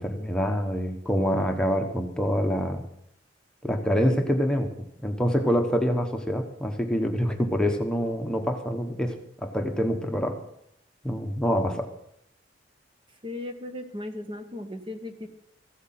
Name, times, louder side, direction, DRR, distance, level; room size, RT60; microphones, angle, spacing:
voice 1, 0.0-2.8 3.6-4.7 5.0-9.2 9.4-10.4 11.0-11.9, equal, 5° left, 4 dB, 1.1 m, -26 dB
voice 2, 13.2-15.3, left 1 dB, 30° right, 7 dB, 1.1 m, -36 dB
15.0 x 8.2 x 7.5 m, 0.73 s
head